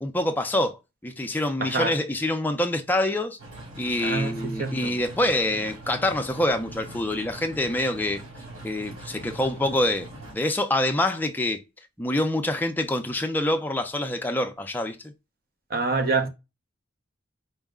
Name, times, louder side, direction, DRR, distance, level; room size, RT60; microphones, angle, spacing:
voice 1, 0.0-3.4 3.8-8.2 8.6-10.1 10.3-11.6 12.0-15.1, left 1 dB, 10° left, 0.4 m, -26 dB
voice 2, 1.6-2.0 4.0-5.0 15.7-16.3, right 3 dB, 45° right, 0.6 m, -26 dB
sound 1, 3.4-10.3, right 1 dB, 90° right, 2.4 m, -42 dB
4.5 x 2.1 x 3.5 m
head